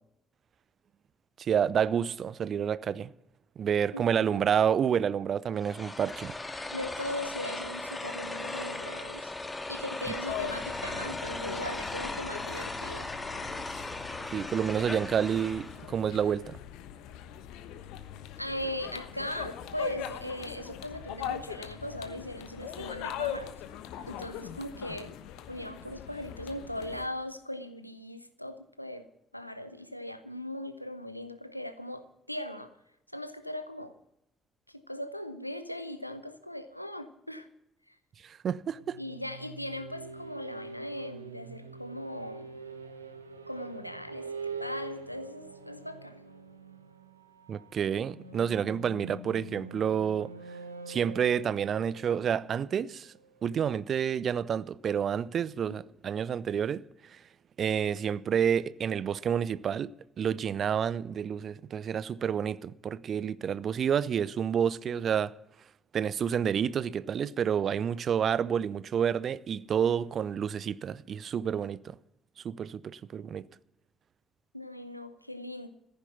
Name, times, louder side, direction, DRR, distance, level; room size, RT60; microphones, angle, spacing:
voice 1, 1.4-3.1 3.6-6.3 14.3-16.6 38.2-39.0 47.5-50.3 50.9-53.1 53.4-57.2 57.6-59.9 60.2-65.3 65.9-72.0 72.4-73.4, right 8 dB, 45° right, 0.5 m, -29 dB
sound 1, 5.6-15.9, left 2 dB, 20° left, 2.0 m, -38 dB
voice 2, 6.7-9.3 9.7-13.1 18.4-23.6 24.1-25.1 25.5-29.1 29.3-32.8 33.1-34.0 34.7-37.5 37.9-38.0 39.0-42.5 43.5-46.2 74.5-75.7, left 1 dB, 90° left, 0.7 m, -39 dB
sound 2, 10.3-27.1, left 10 dB, 65° left, 1.1 m, -41 dB
sound 3, 38.8-53.4, right 3 dB, 85° right, 0.9 m, -45 dB
14.5 x 10.5 x 7.0 m
figure-of-eight pair, 45°, 0 cm